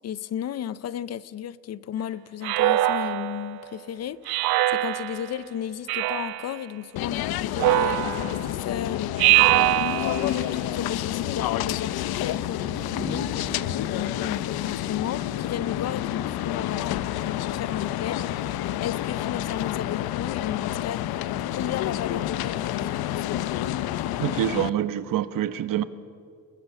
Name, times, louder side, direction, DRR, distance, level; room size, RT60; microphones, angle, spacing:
voice 1, 0.0-9.7 10.0-18.2 18.8-21.2 21.5-23.4, left 10 dB, 45° left, 0.6 m, -34 dB
Speech synthesizer, 2.4-3.5 4.3-5.3 5.9-6.5 7.6-8.5 9.2-10.3, right 15 dB, 90° right, 1.0 m, -22 dB
sound 1, 4.0-5.9 7.2-16.7, right 1 dB, 10° left, 6.8 m, -46 dB
sound 2, 7.0-24.7, left 12 dB, 90° left, 0.8 m, -29 dB
voice 2, 24.2-25.8, right 11 dB, 65° right, 1.1 m, -26 dB
28.5 x 22.5 x 7.1 m
cardioid pair, 175°, 36 cm